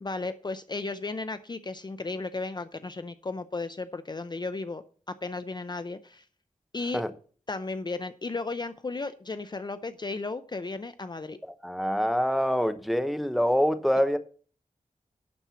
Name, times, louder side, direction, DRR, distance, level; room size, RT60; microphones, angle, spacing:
voice 1, 0.0-6.2 6.7-7.0 7.5-11.4, left 3 dB, 35° left, 0.5 m, -34 dB
voice 2, 11.5-14.2, equal, ahead, 0.8 m, -25 dB
11.5 x 4.5 x 7.0 m
wide cardioid pair, 100°, 13 cm